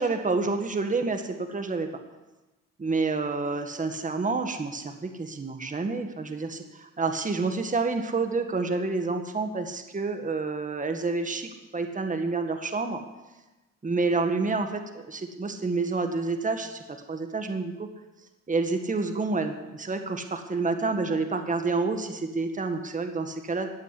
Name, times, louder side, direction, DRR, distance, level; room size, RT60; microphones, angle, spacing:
voice 1, 0.0-1.9 2.8-13.0 13.8-17.9 18.5-23.7, right 3 dB, 25° right, 6 dB, 1.8 m, -28 dB
15.0 x 9.4 x 9.9 m, 1.1 s
cardioid pair, 90°, 30 cm